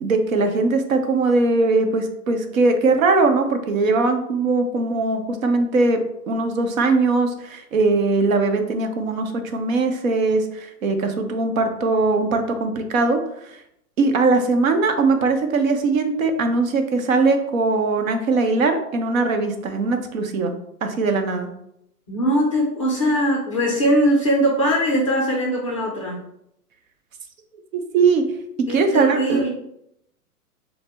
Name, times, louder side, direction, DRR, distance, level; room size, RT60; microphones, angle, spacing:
voice 1, 0.0-6.0 6.3-13.6 14.0-20.5 20.8-21.5 27.7-28.2 28.7-29.4, right 3 dB, 60° right, 6 dB, 0.9 m, -20 dB
voice 2, 22.1-26.2 28.7-29.5, equal, 20° left, -1 dB, 0.4 m, -21 dB
6.2 x 2.1 x 3.4 m, 0.78 s
hypercardioid pair, 140°, 47 cm